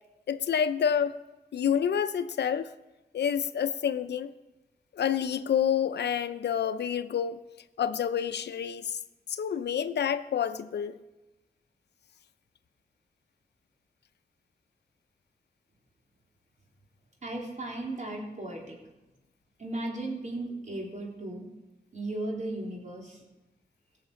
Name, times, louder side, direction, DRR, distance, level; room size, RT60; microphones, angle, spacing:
voice 1, 0.3-1.2 1.5-2.7 3.1-4.3 4.9-7.4 7.8-9.0 9.3-11.0, left 8 dB, 85° left, 0.6 m, -28 dB
voice 2, 17.2-18.8 19.6-21.5 21.9-23.2, right 2 dB, 45° right, 3.7 m, -36 dB
17.0 x 6.6 x 7.1 m
cardioid pair, 55°, 17 cm